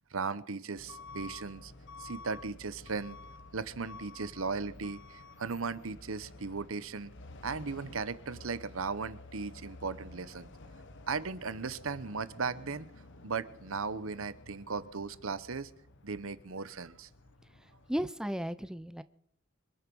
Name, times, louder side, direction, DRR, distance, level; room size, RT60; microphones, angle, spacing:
voice 1, 0.1-1.7 2.0-3.2 3.5-7.1 7.4-10.5 11.1-12.9 13.2-15.7 16.0-17.1, right 4 dB, 70° right, 15 dB, 0.9 m, -37 dB
Truck / Alarm, 0.8-18.0, left 2 dB, 60° left, 1.3 m, -51 dB
voice 2, 17.9-19.0, equal, 5° right, 12 dB, 0.6 m, -34 dB
25.0 x 9.1 x 6.2 m, 0.68 s
head